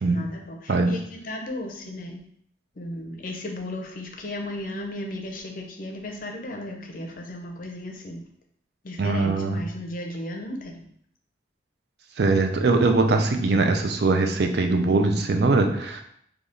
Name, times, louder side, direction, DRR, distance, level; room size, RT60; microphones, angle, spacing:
voice 1, 0.0-2.2 2.8-8.2 8.8-10.8, left 1 dB, 45° left, 2 dB, 0.6 m, -35 dB
voice 2, 9.0-9.6 12.2-16.0, right 3 dB, 60° right, 5 dB, 0.4 m, -21 dB
3.4 x 2.3 x 3.8 m, 0.66 s
head